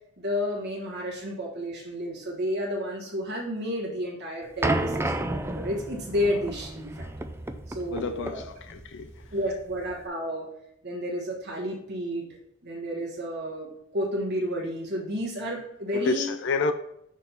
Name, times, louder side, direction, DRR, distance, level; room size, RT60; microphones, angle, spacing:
voice 1, 0.2-7.1 7.7-8.5 9.3-10.5 10.8-12.3 12.6-16.4, equal, 50° right, 1.4 m, -31 dB
sound 1, 4.6-10.0, right 2 dB, 10° right, 0.4 m, -32 dB
voice 2, 7.9-9.1 15.9-16.7, left 3 dB, 60° left, 0.5 m, -29 dB
6.7 x 3.7 x 5.5 m
head